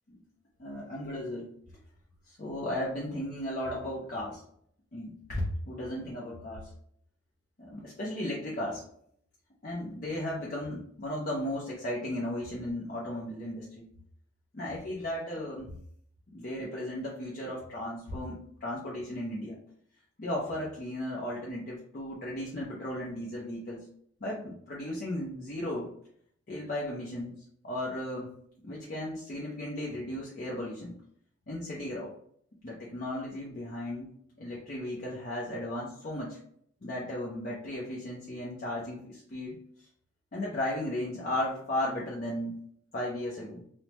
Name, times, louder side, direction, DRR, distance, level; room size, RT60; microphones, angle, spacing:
voice 1, 0.6-1.5 2.3-4.4 4.9-6.7 7.6-8.8 9.6-13.8 14.5-15.7 16.3-19.6 20.2-23.8 24.2-25.9 26.5-27.3 27.6-28.3 28.6-30.9 31.5-32.1 32.6-34.1 34.4-36.4 36.8-39.6 40.3-42.6 42.9-43.6, left 1 dB, 40° left, -5 dB, 0.5 m, -35 dB
3.2 x 2.0 x 2.9 m, 0.65 s
head